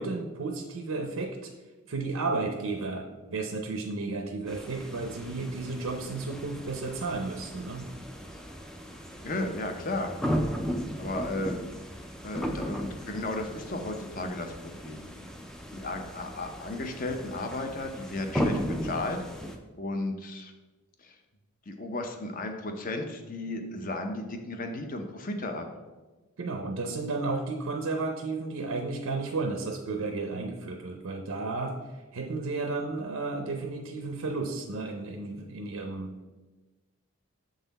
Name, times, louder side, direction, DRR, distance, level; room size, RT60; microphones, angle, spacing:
voice 1, 0.0-1.5 1.9-7.9 26.4-36.2, right 3 dB, 75° right, 4 dB, 0.6 m, -33 dB
sound 1, 4.5-19.6, equal, 5° left, 0.3 m, -36 dB
voice 2, 9.2-10.1 11.0-11.6 12.2-15.1 15.7-19.2 19.8-20.5 21.0-21.2 21.7-25.7, left 2 dB, 40° left, 5 dB, 0.6 m, -34 dB
7.1 x 4.0 x 4.0 m, 1.2 s
head